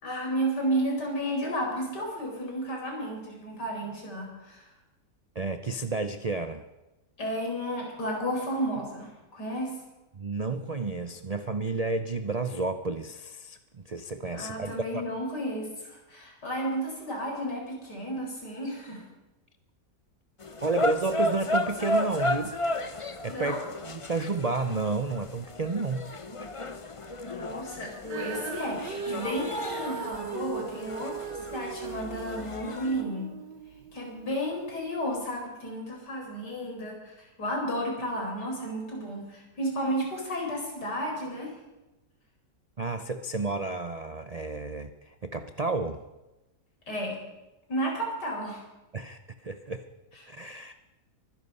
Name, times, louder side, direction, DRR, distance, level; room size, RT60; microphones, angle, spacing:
voice 1, 0.0-4.7 7.2-9.7 14.3-19.0 23.3-23.6 27.2-33.3 33.9-41.6 46.9-47.2 47.7-48.7 50.1-50.2, equal, 75° left, 0 dB, 5.1 m, -32 dB
voice 2, 5.3-6.6 10.1-15.1 20.6-22.5 23.2-23.6 23.8-26.0 42.8-46.0 48.9-49.8 50.3-50.7, right 3 dB, 60° right, 9 dB, 0.4 m, -31 dB
sound 1, 20.4-33.0, left 1 dB, 30° left, 0.6 m, -34 dB
Female singing, 28.0-34.4 35.1-35.2, right 6 dB, 90° right, 1.8 m, -39 dB
24.0 x 10.5 x 5.5 m, 1.0 s
omnidirectional pair, 1.8 m